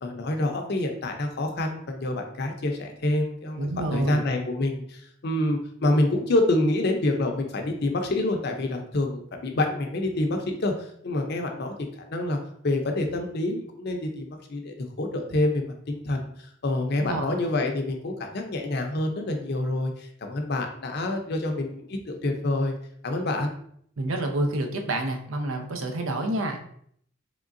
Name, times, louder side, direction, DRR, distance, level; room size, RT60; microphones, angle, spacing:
voice 1, 0.0-11.7 12.1-12.4 12.6-22.8 23.0-23.5, left 2 dB, 55° left, 3 dB, 0.6 m, -27 dB
voice 2, 3.6-4.2 17.0-17.3 24.0-26.6, right 1 dB, 80° right, 3 dB, 0.6 m, -28 dB
3.6 x 3.4 x 2.5 m, 0.65 s
head